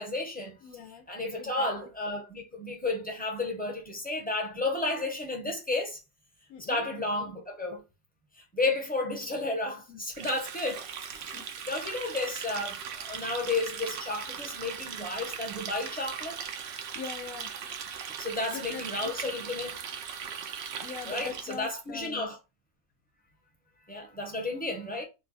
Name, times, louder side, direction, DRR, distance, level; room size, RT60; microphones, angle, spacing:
voice 1, 0.0-0.6 1.1-6.0 6.7-7.8 8.4-11.4 11.7-16.4 18.2-19.8 21.1-22.4 23.9-25.0, left 2 dB, 10° left, 0.6 m, -32 dB
voice 2, 0.6-1.1 1.4-1.7 6.5-6.9 9.9-10.0 11.3-11.4 16.9-17.5 18.5-18.8 20.8-22.3, left 7 dB, 85° left, 1.0 m, -41 dB
Water tap faucet, 10.1-21.7, right 7 dB, 65° right, 0.7 m, -39 dB
3.2 x 2.2 x 4.0 m
omnidirectional pair, 1.5 m